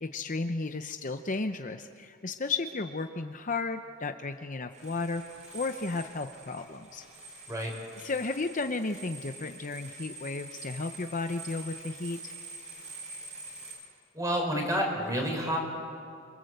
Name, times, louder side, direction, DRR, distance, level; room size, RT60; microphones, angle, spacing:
voice 1, 0.0-7.0 8.0-12.3, left 3 dB, 40° left, 7 dB, 0.7 m, -34 dB
sound 1, 4.7-13.7, right 2 dB, 30° right, 7.8 m, -46 dB
voice 2, 14.1-15.6, equal, 15° right, 1 dB, 5.4 m, -29 dB
28.0 x 23.0 x 8.0 m, 2.4 s
head